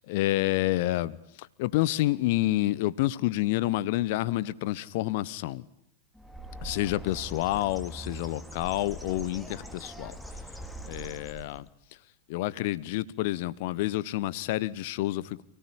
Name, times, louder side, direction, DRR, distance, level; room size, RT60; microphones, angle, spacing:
voice 1, 0.1-5.6 6.6-10.1 10.9-11.7 12.3-15.4, left 16 dB, 50° left, 1.1 m, -29 dB
Bird, 6.2-11.7, right 1 dB, ahead, 2.9 m, -42 dB
29.0 x 19.0 x 10.0 m
figure-of-eight pair, 90°, 0 cm